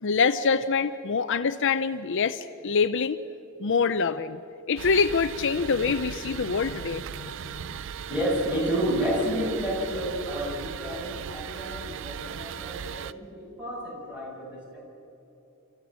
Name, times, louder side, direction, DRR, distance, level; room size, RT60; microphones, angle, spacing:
voice 1, 0.0-3.2 3.6-4.4 4.7-7.3, left 5 dB, 60° left, 12 dB, 0.6 m, -25 dB
sound 1, 4.8-13.1, right 7 dB, 60° right, 0.5 m, -38 dB
voice 2, 8.1-14.8, equal, 5° right, -5 dB, 7.3 m, -30 dB
29.5 x 14.5 x 7.5 m, 2.9 s
head